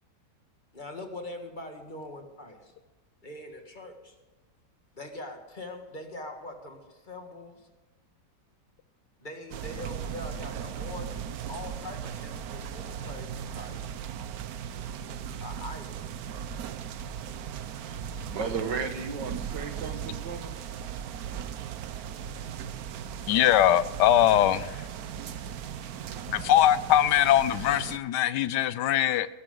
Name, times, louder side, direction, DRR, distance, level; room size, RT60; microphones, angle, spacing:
voice 1, 0.7-2.7 3.2-4.2 4.9-7.7 9.2-13.9 15.4-16.0 18.1-18.4, left 1 dB, 30° left, 4 dB, 1.9 m, -42 dB
sound 1, 9.5-28.0, right 8 dB, 65° right, 1.2 m, -37 dB
voice 2, 18.3-20.5, right 5 dB, 85° right, 7 dB, 2.1 m, -34 dB
voice 3, 23.3-24.8 26.3-29.3, left 12 dB, 80° left, 16 dB, 1.2 m, -22 dB
21.5 x 11.0 x 3.9 m, 1.2 s
omnidirectional pair, 1.9 m